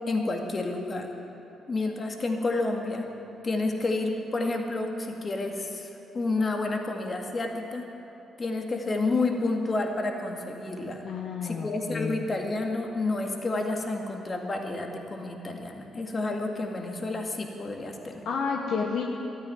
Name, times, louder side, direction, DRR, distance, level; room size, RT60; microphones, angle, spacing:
voice 1, 0.1-1.1 1.7-3.1 3.4-7.9 8.4-11.0 11.4-18.3, left 2 dB, 40° left, 2 dB, 2.1 m, -30 dB
voice 2, 11.0-12.2 18.2-19.0, left 5 dB, 65° left, 0 dB, 1.1 m, -30 dB
13.5 x 9.2 x 9.4 m, 2.9 s
hypercardioid pair, 45°, 0 cm